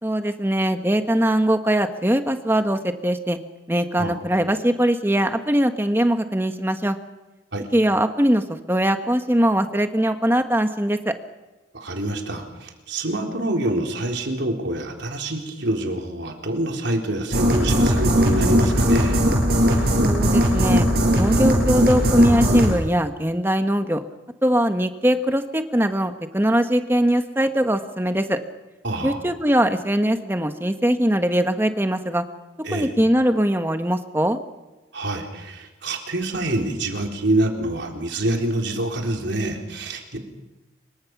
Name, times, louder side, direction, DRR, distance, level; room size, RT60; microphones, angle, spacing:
voice 1, 0.0-3.4 3.7-7.0 7.7-11.1 20.0-20.9 21.1-24.0 24.4-28.4 29.0-32.2 32.7-34.4, equal, 10° right, 7 dB, 1.3 m, -21 dB
voice 2, 11.7-19.2 28.8-29.2 32.6-32.9 34.9-40.2, right 1 dB, 80° right, 2 dB, 4.0 m, -26 dB
sound 1, 17.3-22.7, equal, 55° right, 7.3 m, -18 dB
26.0 x 23.5 x 6.1 m, 1.1 s
head